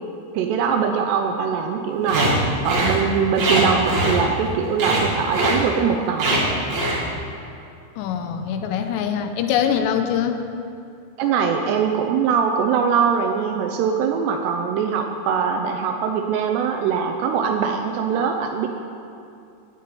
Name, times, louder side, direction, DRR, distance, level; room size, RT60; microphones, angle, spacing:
voice 1, 0.3-2.3 2.6-6.3 11.2-18.7, right 6 dB, 80° right, 4 dB, 2.4 m, -22 dB
sound 1, 2.1-2.3 2.6-3.0 3.4-4.5 4.8-5.1 5.3-5.6 6.2-6.4 6.7-7.0, right 1 dB, 40° right, 3.1 m, -21 dB
voice 2, 8.0-10.5, left 8 dB, 80° left, 7 dB, 2.7 m, -23 dB
10.0 x 8.1 x 9.5 m, 2.6 s
omnidirectional pair, 5.6 m